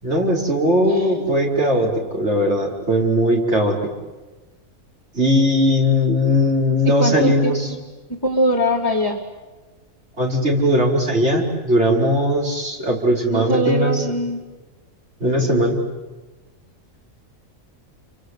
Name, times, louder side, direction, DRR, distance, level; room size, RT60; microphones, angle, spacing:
voice 1, 0.0-3.8 5.2-7.7 10.2-14.0 15.2-15.8, equal, 55° right, 0 dB, 5.3 m, -19 dB
voice 2, 0.9-1.2 7.0-7.8 8.1-9.2 13.3-14.4 15.5-15.7, equal, 15° left, 0 dB, 2.3 m, -22 dB
29.0 x 24.5 x 8.3 m, 1.2 s
omnidirectional pair, 1.4 m